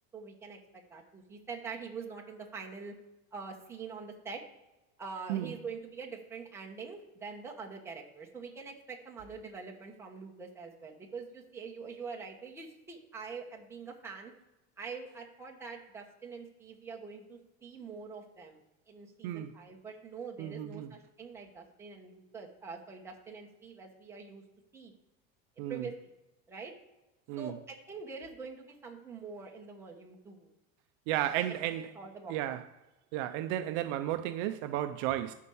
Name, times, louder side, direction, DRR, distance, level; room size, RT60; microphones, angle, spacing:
voice 1, 0.1-2.9 3.3-4.4 5.0-14.3 14.8-18.6 18.9-24.4 24.7-24.9 25.7-26.1 26.5-26.7 27.4-30.5 31.9-32.6, right 5 dB, 10° right, 1.0 m, -44 dB
voice 2, 19.2-19.5 20.4-20.9 25.6-25.9 27.3-27.5 31.1-31.9 32.3-32.6 33.1-35.3, right 13 dB, 55° right, 0.5 m, -33 dB
11.5 x 4.4 x 7.0 m
cardioid pair, 180°, 32 cm